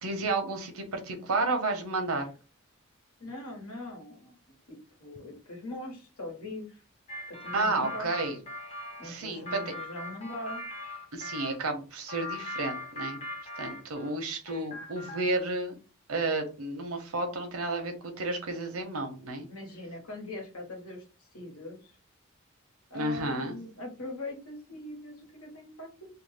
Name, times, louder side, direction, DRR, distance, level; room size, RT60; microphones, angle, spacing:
voice 1, 0.0-2.3 7.5-8.4 9.0-9.6 11.1-13.2 13.6-15.7 16.1-19.5 22.9-23.6, right 2 dB, 85° right, 5 dB, 0.8 m, -31 dB
voice 2, 3.2-4.4 4.7-6.8 7.3-8.1 9.0-10.7 14.5-14.6 19.5-21.9 22.9-26.1, left 1 dB, 90° left, 1 dB, 1.2 m, -41 dB
sound 1, 7.1-11.6 12.1-14.2 14.5-15.4, left 2 dB, 30° left, 0.6 m, -40 dB
2.6 x 2.2 x 3.3 m, 0.33 s
head